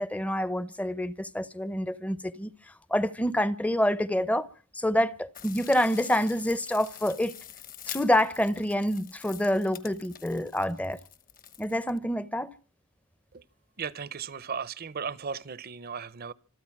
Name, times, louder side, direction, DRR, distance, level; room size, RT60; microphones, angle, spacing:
voice 1, 0.0-2.5 2.9-4.5 4.7-7.3 7.9-11.0 11.6-12.5, left 1 dB, 5° left, 0.7 m, -27 dB
sound 1, 5.3-12.0, left 10 dB, 40° left, 1.1 m, -46 dB
voice 2, 13.8-16.3, right 6 dB, 45° right, 0.7 m, -36 dB
26.0 x 9.1 x 5.9 m
head